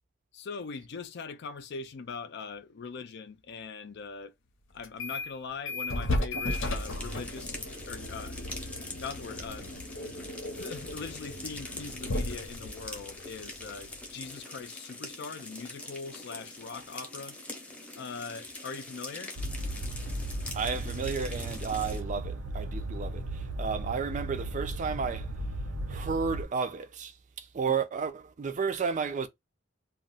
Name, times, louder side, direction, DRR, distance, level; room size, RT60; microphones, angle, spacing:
voice 1, 0.3-4.3 4.7-8.4 8.8-9.7 10.2-17.4 17.9-19.3 27.7-27.8, left 5 dB, 60° left, 0.4 m, -41 dB
sound 1, 4.8-5.3 5.7-14.1, left 1 dB, 90° left, 0.8 m, -35 dB
sound 2, 6.5-22.0, left 2 dB, 5° left, 0.7 m, -43 dB
sound 3, 19.4-26.4, right 1 dB, 90° right, 0.7 m, -36 dB
voice 2, 20.5-25.3 25.9-29.3, right 5 dB, 40° right, 0.4 m, -32 dB
2.3 x 2.0 x 3.8 m
head